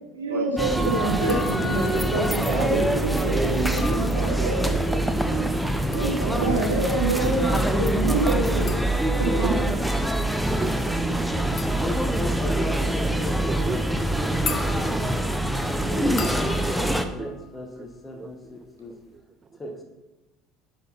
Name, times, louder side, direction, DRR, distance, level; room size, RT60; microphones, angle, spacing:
voice 1, 0.1-5.1 5.9-8.7 9.1-9.8 10.9-11.0, right 2 dB, 80° right, -3 dB, 2.9 m, -27 dB
sound 1, 0.6-17.1, right 1 dB, ahead, 0.9 m, -24 dB
sound 2, 1.3-2.0 3.6-4.7 5.6-18.4 18.6-19.2, left 5 dB, 35° left, 1.3 m, -40 dB
voice 2, 5.1-6.2 9.4-9.8 10.3-11.1 11.4-11.5 13.5-13.8 15.9-16.0 16.7-16.9 17.2-17.3 18.2-18.3, right 5 dB, 30° right, 11 dB, 0.6 m, -36 dB
voice 3, 11.3-15.4 15.8-18.9 19.5-19.8, left 1 dB, 20° left, 2 dB, 2.0 m, -37 dB
11.0 x 6.8 x 4.6 m, 1.0 s
figure-of-eight pair, 65°, 0 cm